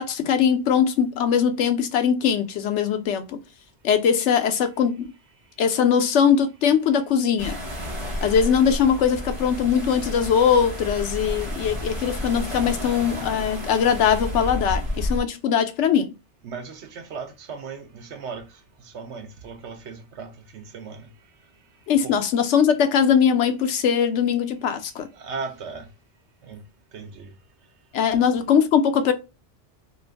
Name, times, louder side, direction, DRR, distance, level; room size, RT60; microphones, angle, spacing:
voice 1, 0.0-3.4 3.8-5.1 5.6-7.6 8.2-16.1 21.9-25.1 27.9-29.1, left 7 dB, 75° left, 0.9 m, -21 dB
sound 1, 7.4-15.2, left 1 dB, 30° right, 1.4 m, -31 dB
voice 2, 16.4-18.5 18.9-21.1 22.0-22.1 25.1-25.9 26.4-26.6 26.9-27.3 28.2-28.3, right 5 dB, 70° right, 1.0 m, -37 dB
3.0 x 2.5 x 3.3 m
omnidirectional pair, 1.2 m